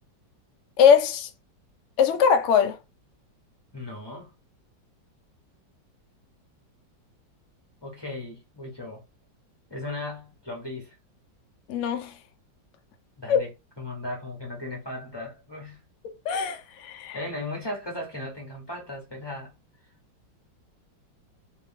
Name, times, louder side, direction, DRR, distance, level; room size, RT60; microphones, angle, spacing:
voice 1, 0.8-1.3 2.0-2.8 11.7-12.1 13.3-13.4 16.3-17.2, left 7 dB, 65° left, 0.7 m, -21 dB
voice 2, 3.7-4.3 7.8-9.0 9.7-11.0 13.2-15.8 17.1-19.5, left 2 dB, 20° left, 0.6 m, -36 dB
3.1 x 2.6 x 3.6 m
omnidirectional pair, 2.0 m